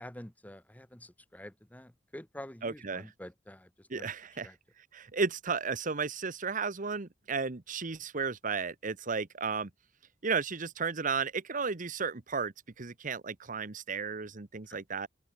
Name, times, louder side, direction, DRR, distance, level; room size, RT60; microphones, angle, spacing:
voice 1, 0.0-4.1 4.4-4.6 14.7-14.8, left 1 dB, 10° left, 1.0 m, -48 dB
voice 2, 2.6-3.1 3.9-4.5 4.8-9.7 10.2-15.1, right 5 dB, 45° right, 1.1 m, -34 dB
open air
head